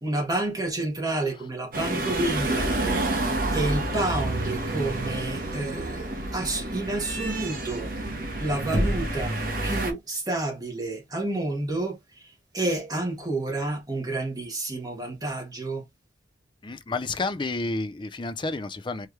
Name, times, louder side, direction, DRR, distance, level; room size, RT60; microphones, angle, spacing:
voice 1, 0.0-7.9 8.4-9.4 9.6-15.8, right 2 dB, 20° right, 1.5 m, -30 dB
sound 1, 1.7-9.9, right 2 dB, 50° right, 1.3 m, -29 dB
Knock, 8.7-9.4, equal, 65° right, 2.0 m, -26 dB
voice 2, 16.6-19.1, left 3 dB, 25° left, 0.4 m, -30 dB
4.6 x 3.2 x 3.2 m
head